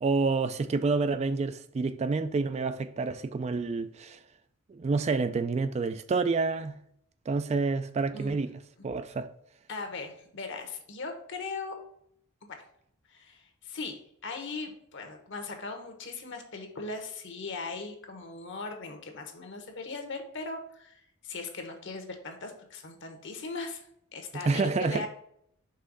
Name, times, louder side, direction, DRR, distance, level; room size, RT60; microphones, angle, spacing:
voice 1, 0.0-4.2 4.7-6.8 7.3-8.5 8.8-9.3 24.3-25.1, right 4 dB, 30° right, 0.3 m, -28 dB
voice 2, 9.7-11.7 13.1-23.8 24.1-25.1, left 3 dB, 60° left, 1.2 m, -39 dB
5.5 x 3.5 x 5.3 m
head